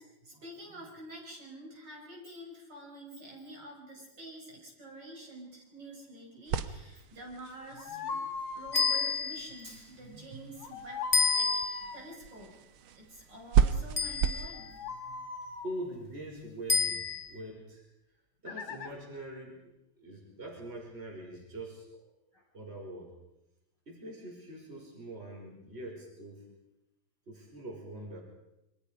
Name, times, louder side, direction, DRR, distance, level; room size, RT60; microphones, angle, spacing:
voice 1, 0.0-12.5 12.9-15.5 22.3-22.4, right 1 dB, 55° right, -1 dB, 6.0 m, -48 dB
sound 1, 6.5-14.5, right 8 dB, 80° right, 1.9 m, -34 dB
sound 2, 7.8-9.0 10.6-12.0 14.5-15.7 18.5-18.9, left 4 dB, 60° left, 2.1 m, -39 dB
sound 3, 8.7-9.6 11.1-12.0 14.0-14.7 16.7-17.4, left 4 dB, 25° left, 1.3 m, -29 dB
voice 2, 15.6-17.8 18.4-19.6 20.0-21.9 22.5-23.1 23.9-26.5 27.3-28.2, right 1 dB, 30° right, -1 dB, 5.5 m, -43 dB
27.0 x 24.5 x 5.1 m, 0.89 s
omnidirectional pair, 2.3 m